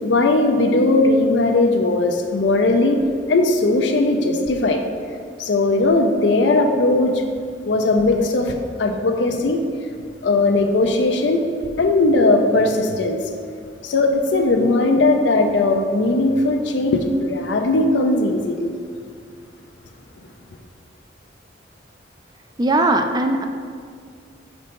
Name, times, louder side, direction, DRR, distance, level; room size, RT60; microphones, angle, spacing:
voice 1, 0.0-3.0 3.3-4.8 5.4-7.2 7.6-9.6 10.2-11.5 11.8-13.2 13.8-18.7, left 2 dB, 85° left, 4 dB, 0.5 m, -18 dB
voice 2, 22.6-23.5, right 2 dB, 25° right, 6 dB, 0.3 m, -19 dB
5.3 x 4.0 x 5.2 m, 2.1 s
head